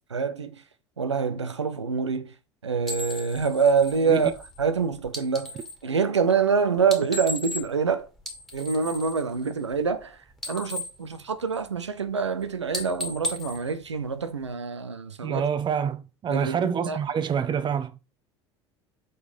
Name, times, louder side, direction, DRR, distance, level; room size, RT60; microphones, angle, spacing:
voice 1, 0.1-0.5 1.0-2.3 2.6-8.1 8.5-10.2 10.5-15.5 16.3-16.6 16.9-17.0, right 5 dB, 90° right, 0.6 m, -26 dB
sound 1, 2.8-5.9 6.8-7.9 8.2-10.0 10.3-11.9 12.2-12.4 12.7-14.5, left 1 dB, ahead, 2.0 m, -36 dB
voice 2, 15.2-18.0, right 7 dB, 30° right, 0.8 m, -27 dB
5.3 x 3.9 x 5.2 m
figure-of-eight pair, 70°, 15 cm